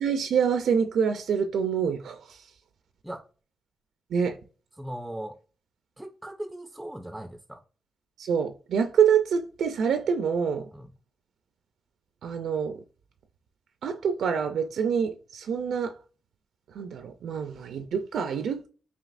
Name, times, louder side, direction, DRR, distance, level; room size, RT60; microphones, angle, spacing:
voice 1, 0.0-2.4 4.1-4.4 8.2-10.7 12.2-12.8 13.8-15.9 16.7-18.7, right 7 dB, 80° right, 0.4 m, -26 dB
voice 2, 4.8-5.4 6.0-7.6 10.7-10.9, right 1 dB, 5° right, 0.4 m, -38 dB
5.1 x 2.8 x 2.5 m
cardioid pair, 100°, 0 cm